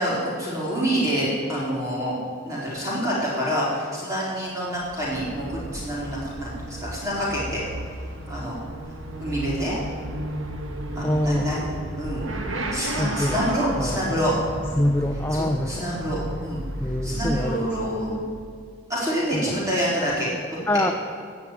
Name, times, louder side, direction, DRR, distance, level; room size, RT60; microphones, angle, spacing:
voice 1, 0.0-2.2 2.5-7.6 8.3-8.6 9.2-9.8 10.9-11.7 12.0-12.3 12.7-14.3 15.3-16.6 17.0-18.2 18.9-20.3, equal, 15° right, -7 dB, 4.5 m, -27 dB
Motorcycle / Accelerating revving vroom, 4.6-18.5, right 1 dB, 75° right, 1.5 m, -34 dB
voice 2, 11.0-11.4 13.0-13.4 13.8-14.2 14.8-15.9 16.8-17.7 19.3-19.5 20.7-20.9, left 1 dB, 10° left, 3 dB, 0.6 m, -25 dB
17.0 x 5.9 x 9.2 m, 2.1 s
head